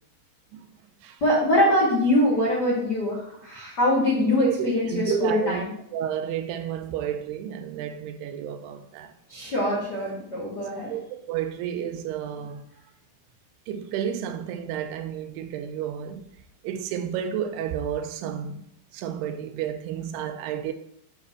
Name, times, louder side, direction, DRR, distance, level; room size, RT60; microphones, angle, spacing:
voice 1, 1.2-5.7 9.3-10.9, left 1 dB, 65° left, 1.0 m, -23 dB
voice 2, 4.4-5.6 5.9-9.1 10.9-12.7 13.7-16.2 16.6-18.7 18.9-20.7, right 9 dB, 85° right, 2.5 m, -31 dB
7.4 x 2.9 x 5.9 m
omnidirectional pair, 4.7 m